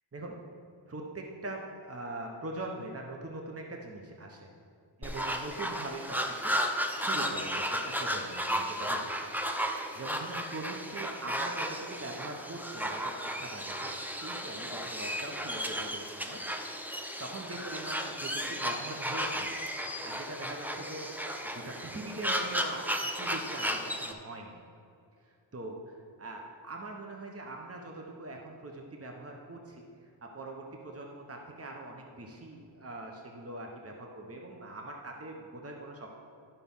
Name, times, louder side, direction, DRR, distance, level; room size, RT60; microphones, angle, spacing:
voice 1, 0.9-4.5 5.0-7.6 8.0-9.3 9.9-16.4 16.9-21.1 21.4-24.6 25.2-36.1, right 2 dB, 30° right, 1 dB, 1.0 m, -42 dB
sound 1, 5.0-24.1, equal, 5° right, 0.7 m, -34 dB
11.5 x 5.8 x 5.5 m, 2.5 s
wide cardioid pair, 60°, 46 cm